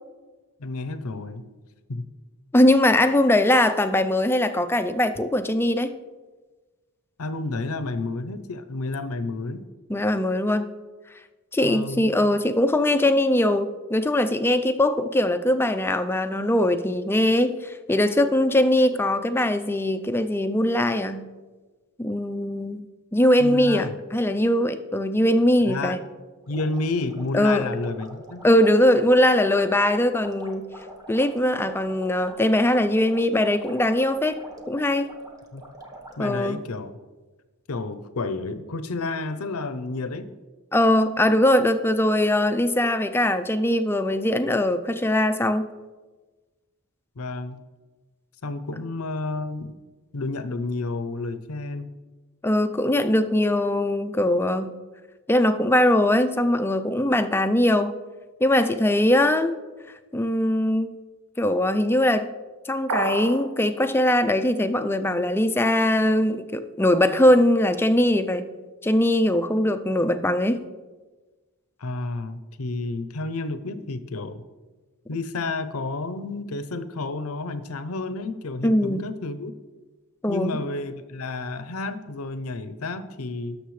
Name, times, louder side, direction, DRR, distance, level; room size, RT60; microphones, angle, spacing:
voice 1, 0.6-1.5 1.9-2.1 7.2-9.7 11.6-12.1 23.4-24.0 25.7-26.0 26.5-28.5 35.5-35.6 36.2-36.9 37.7-40.3 47.2-47.6 48.4-49.8 50.1-51.9 71.8-74.4 75.1-79.5 80.3-83.6, left 3 dB, 70° left, 12 dB, 0.7 m, -31 dB
voice 2, 2.5-5.9 9.9-10.7 11.5-21.3 22.0-22.8 23.1-26.0 27.3-27.7 28.4-30.7 31.1-34.4 34.7-35.1 36.2-36.6 40.7-45.7 52.4-54.7 55.3-58.0 58.4-59.6 60.1-60.9 61.4-62.3 62.7-68.5 68.8-70.6 78.6-79.0 80.2-80.6, left 1 dB, 10° left, 9 dB, 0.4 m, -21 dB
sound 1, 26.4-36.4, right 1 dB, 15° right, 1.1 m, -44 dB
sound 2, 62.9-63.5, right 3 dB, 70° right, 0.9 m, -27 dB
18.0 x 6.6 x 3.2 m, 1.3 s
head